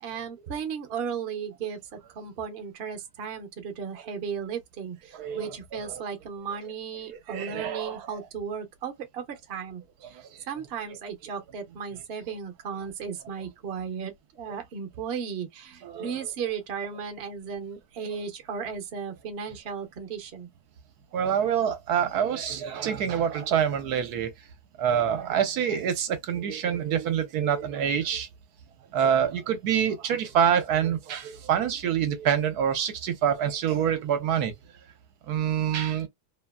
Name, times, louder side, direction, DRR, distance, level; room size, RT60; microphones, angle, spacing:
voice 1, 0.0-1.8 2.2-9.8 10.5-20.5, right 6 dB, 50° right, 0.7 m, -35 dB
voice 2, 5.1-6.0 7.0-8.1 10.0-10.3 14.5-14.6 15.8-16.3 21.1-24.3 24.8-28.3 28.9-34.5 35.3-36.1, right 8 dB, 70° right, 1.1 m, -26 dB
2.8 x 2.4 x 2.3 m
omnidirectional pair, 1.8 m